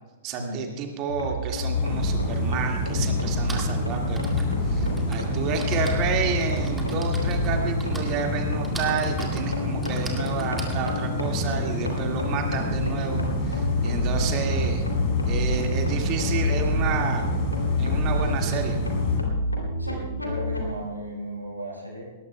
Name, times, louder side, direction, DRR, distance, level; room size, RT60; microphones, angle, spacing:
voice 1, 0.2-4.3 4.6-14.8 15.3-17.4 17.8-18.8, right 6 dB, 35° right, 3 dB, 1.9 m, -30 dB
sound 1, 1.1-20.7, left 1 dB, 85° left, 2.8 m, -29 dB
sound 2, 1.7-19.2, left 2 dB, 40° left, 3.9 m, -29 dB
Typing, 2.1-2.2 3.2-12.3, right 2 dB, 10° right, 2.2 m, -41 dB
voice 2, 19.8-22.0, right 1 dB, 85° right, -3 dB, 5.3 m, -35 dB
20.0 x 18.5 x 2.2 m, 1.3 s
figure-of-eight pair, 105°, 0 cm